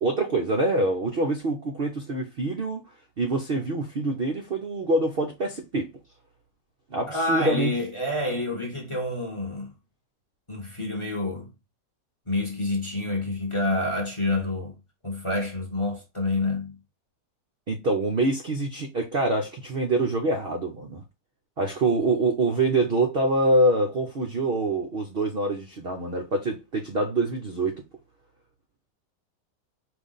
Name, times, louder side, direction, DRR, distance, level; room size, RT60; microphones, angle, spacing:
voice 1, 0.0-2.8 3.2-5.9 6.9-7.7 17.7-21.0 21.6-27.8, right 2 dB, 65° right, 0.5 m, -25 dB
voice 2, 7.1-9.7 10.5-11.5 12.3-16.8, left 2 dB, 20° left, 0.9 m, -28 dB
4.9 x 2.6 x 3.9 m
omnidirectional pair, 1.9 m